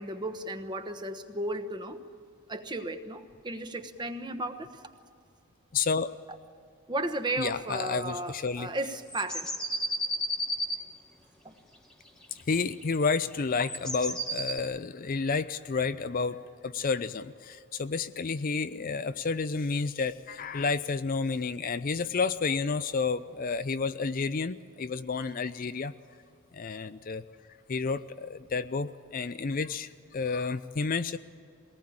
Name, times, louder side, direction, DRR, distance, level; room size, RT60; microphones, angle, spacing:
voice 1, 0.0-2.0 2.5-4.8 6.9-9.5 11.4-11.5, right 1 dB, 20° right, 7 dB, 1.1 m, -34 dB
voice 2, 5.7-6.1 7.4-8.7 12.5-25.9 26.5-27.2 27.7-31.2, left 4 dB, 40° left, 12 dB, 0.5 m, -30 dB
sound 1, 9.1-10.8 12.2-14.6, equal, 5° left, 1.4 m, -33 dB
22.5 x 18.5 x 8.7 m, 2.4 s
head